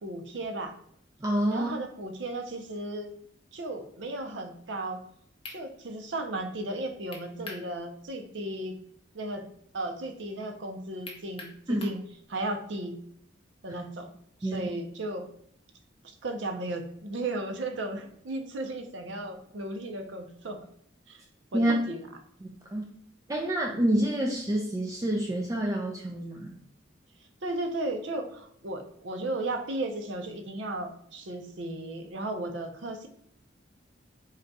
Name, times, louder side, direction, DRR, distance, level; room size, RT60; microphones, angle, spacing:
voice 1, 0.0-0.8 1.5-3.1 3.5-5.0 5.5-8.8 9.1-9.4 9.7-12.0 12.3-12.9 13.6-14.1 14.4-15.3 16.0-20.6 21.1-21.2 21.5-22.0 27.4-33.1, right 2 dB, 75° right, 5 dB, 0.6 m, -35 dB
voice 2, 1.2-1.7 11.7-11.9 14.4-14.7 21.5-21.7 22.7-22.8 23.3-26.5, right 1 dB, 20° right, 0 dB, 0.3 m, -27 dB
sound 1, 5.4-5.6 7.1-7.7 8.1-8.2 11.0-12.0, left 3 dB, 30° left, 0.6 m, -43 dB
3.9 x 2.3 x 3.9 m, 0.67 s
head